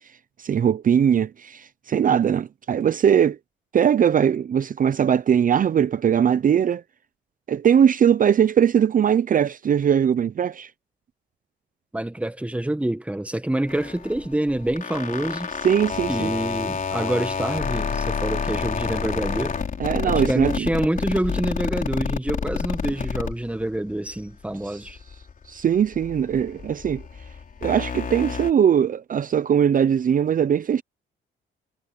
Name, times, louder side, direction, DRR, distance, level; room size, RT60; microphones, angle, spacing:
voice 1, 0.4-3.4 3.7-6.8 7.5-10.7 15.6-16.3 19.8-20.7 24.6-24.9 25.5-27.0 27.6-30.8, right 8 dB, 45° right, 0.7 m, -20 dB
voice 2, 11.9-15.5 16.1-19.6 20.0-25.0, right 1 dB, 5° right, 1.5 m, -26 dB
sound 1, 13.7-24.3 24.6-28.5, left 6 dB, 45° left, 3.8 m, -29 dB
cardioid pair, 90°, 20 cm